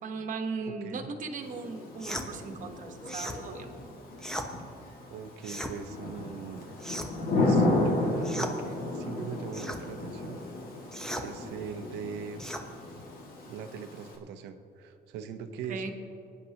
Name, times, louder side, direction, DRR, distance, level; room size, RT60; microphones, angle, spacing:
voice 1, 0.0-3.7 15.7-15.9, right 4 dB, 50° right, 5 dB, 1.3 m, -37 dB
voice 2, 0.8-1.1 5.1-6.7 7.3-10.4 11.2-12.4 13.4-15.9, right 7 dB, 90° right, 8 dB, 0.8 m, -41 dB
Thunder / Rain, 1.4-14.2, left 2 dB, 60° left, 2.1 m, -33 dB
sound 1, 2.0-2.3 3.1-3.4 4.2-4.5 5.4-5.8 6.8-7.3 8.2-8.6 9.5-9.8 10.9-11.3 12.4-12.7, equal, 5° left, 0.9 m, -36 dB
25.0 x 9.9 x 2.9 m, 2.7 s
cardioid pair, 110°, 17 cm